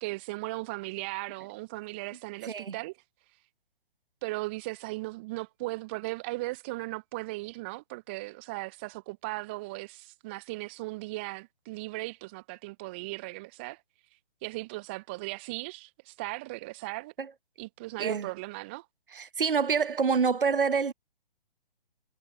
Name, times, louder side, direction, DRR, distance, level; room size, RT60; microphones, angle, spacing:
voice 1, 0.0-2.9 4.2-13.8 14.4-17.1 17.6-18.9, right 22 dB, 10° right, 0.4 m, -37 dB
voice 2, 2.4-2.8 17.2-17.3 18.0-18.3 19.1-20.9, right 5 dB, 65° right, 1.1 m, -27 dB
figure-of-eight pair, 130°, 29 cm